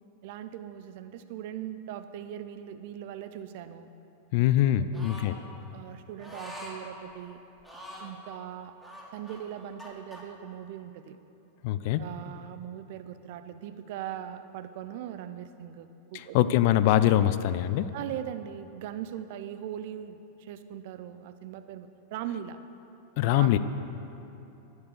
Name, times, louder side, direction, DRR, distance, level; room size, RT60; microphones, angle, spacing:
voice 1, 0.2-3.9 4.9-5.1 5.7-7.4 8.0-8.7 9.1-11.2 12.0-16.4 17.9-22.6 23.2-23.6, right 10 dB, 50° right, 11 dB, 0.6 m, -40 dB
voice 2, 4.3-5.3 11.6-12.0 16.1-17.9 23.2-23.6, left 12 dB, 50° left, 13 dB, 0.4 m, -23 dB
sound 1, 4.9-5.3 6.2-6.8 7.6-8.2 8.8-10.2, equal, 5° left, 2.2 m, -44 dB
11.0 x 9.4 x 6.6 m, 2.9 s
figure-of-eight pair, 90°, 0 cm